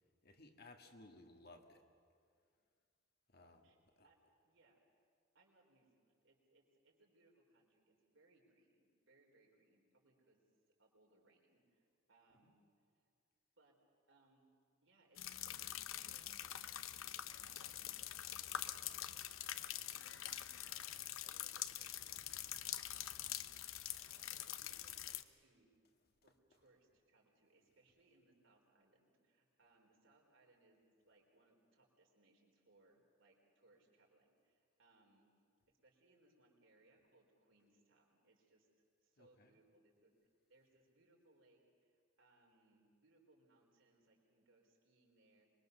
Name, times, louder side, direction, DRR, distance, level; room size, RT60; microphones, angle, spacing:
voice 1, 0.2-1.8 3.3-4.1 12.4-12.5 39.2-39.5, left 2 dB, 50° left, 4 dB, 1.8 m, -60 dB
voice 2, 3.6-4.2 4.4-4.8 5.3-10.4 10.8-12.6 12.9-13.1 13.6-13.8 14.1-14.5 14.8-19.2 19.4-20.9 21.2-22.5 22.9-23.5 23.9-25.7 26.2-35.3 35.8-38.7 39.0-40.1 40.5-45.5, right 2 dB, 70° right, -1 dB, 4.5 m, -72 dB
sound 1, 15.2-25.2, left 12 dB, 90° left, 0.8 m, -45 dB
25.0 x 22.0 x 6.9 m, 2.2 s
head